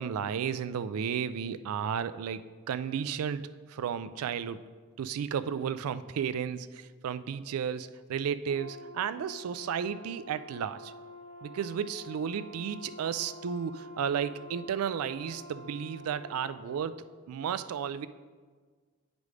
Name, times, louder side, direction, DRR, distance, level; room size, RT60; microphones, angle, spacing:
voice 1, 0.0-4.6 5.0-10.9 11.4-18.1, right 7 dB, 90° right, 14 dB, 0.3 m, -33 dB
Brass instrument, 8.5-16.9, left 2 dB, 30° left, 0.3 m, -48 dB
9.6 x 5.1 x 3.2 m, 1.5 s
head